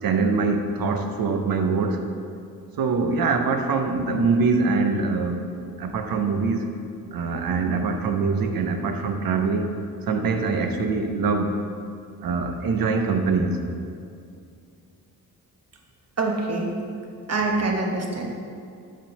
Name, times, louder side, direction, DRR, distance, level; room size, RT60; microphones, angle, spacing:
voice 1, 0.0-2.0 2.8-5.4 5.8-6.7 7.1-9.7 10.1-11.6 12.2-13.6, right 4 dB, 70° right, 5 dB, 0.8 m, -23 dB
voice 2, 16.2-16.7 17.3-18.3, right 3 dB, 45° right, 0 dB, 1.1 m, -25 dB
7.5 x 3.7 x 6.6 m, 2.4 s
cardioid pair, 100°, 36 cm